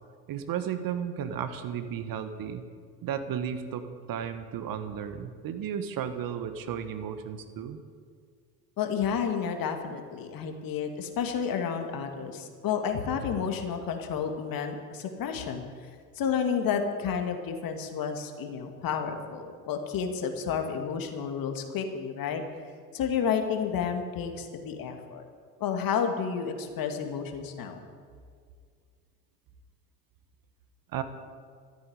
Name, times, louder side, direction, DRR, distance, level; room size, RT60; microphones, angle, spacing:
voice 1, 0.3-2.6 3.0-7.8 30.9-31.0, right 8 dB, 45° right, 9 dB, 1.5 m, -34 dB
voice 2, 8.8-15.6 16.2-22.4 22.9-25.2 25.6-27.9, left 7 dB, 45° left, 5 dB, 2.3 m, -31 dB
14.0 x 8.7 x 9.6 m, 2.1 s
hypercardioid pair, 80°, 47 cm